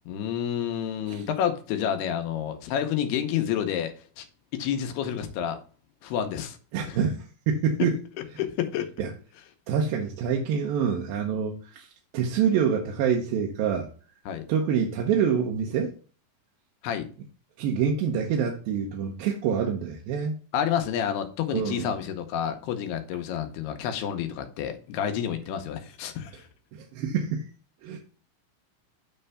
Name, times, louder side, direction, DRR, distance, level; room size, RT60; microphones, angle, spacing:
voice 1, 0.1-4.3 4.5-5.6 6.0-6.6 6.9-7.0 8.4-8.9 14.3-14.4 16.8-17.1 20.5-26.5, left 9 dB, 90° left, 3.0 m, -29 dB
voice 2, 6.7-8.0 9.0-9.1 9.7-11.9 12.1-13.9 14.5-15.9 17.6-20.4 21.5-21.9 26.7-27.5 27.8-28.0, right 7 dB, 75° right, 2.5 m, -26 dB
9.2 x 3.3 x 5.5 m
omnidirectional pair, 4.5 m